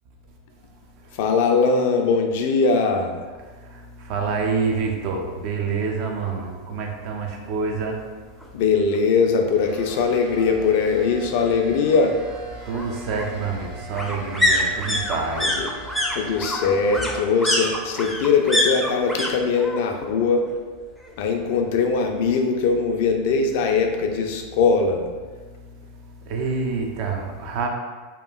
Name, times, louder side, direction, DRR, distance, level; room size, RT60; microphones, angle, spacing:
voice 1, 1.2-3.2 8.5-12.1 15.6-15.7 16.1-20.5 21.2-25.0, left 5 dB, 65° left, 4 dB, 0.3 m, -21 dB
voice 2, 3.7-8.0 12.7-15.6 26.3-27.7, right 4 dB, 55° right, 2 dB, 0.4 m, -27 dB
sound 1, 8.4-8.5 8.9-9.0 9.2-10.2 11.5-19.3 19.6-20.1 20.4-21.4 21.7-21.8, left 1 dB, ahead, 0.4 m, -26 dB
sound 2, 9.5-17.4 17.7-19.2, right 2 dB, 35° right, 0.8 m, -41 dB
2.8 x 2.4 x 2.3 m, 1.4 s
hypercardioid pair, 95°, 0 cm